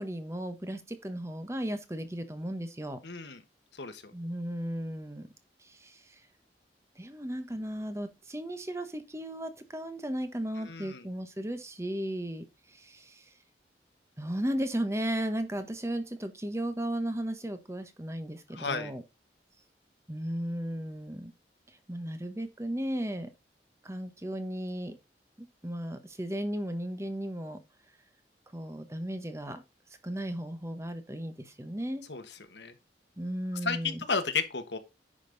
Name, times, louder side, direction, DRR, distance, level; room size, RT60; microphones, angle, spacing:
voice 1, 0.0-3.0 4.1-5.3 5.6-6.2 7.0-13.2 14.2-19.0 20.1-21.3 21.9-23.3 23.8-25.0 25.4-27.6 28.5-29.6 30.0-32.1 33.2-34.0, right 1 dB, 15° right, 1.0 m, -35 dB
voice 2, 3.0-3.4 3.7-4.1 10.6-11.0 18.5-18.9 32.1-32.2 32.5-32.7 33.6-34.8, left 5 dB, 80° left, 1.3 m, -33 dB
10.0 x 5.3 x 3.9 m
head